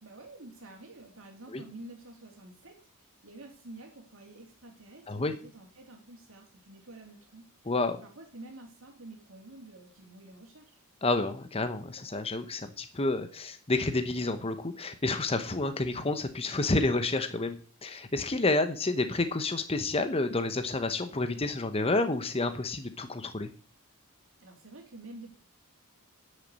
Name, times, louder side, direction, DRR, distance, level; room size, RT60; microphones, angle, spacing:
voice 1, 0.0-2.8 3.2-10.8 24.4-25.3, right 2 dB, 60° right, 2 dB, 2.8 m, -49 dB
voice 2, 7.7-8.0 11.0-17.6 17.8-23.5, left 2 dB, 25° left, 9 dB, 1.0 m, -29 dB
10.5 x 6.6 x 8.1 m, 0.42 s
head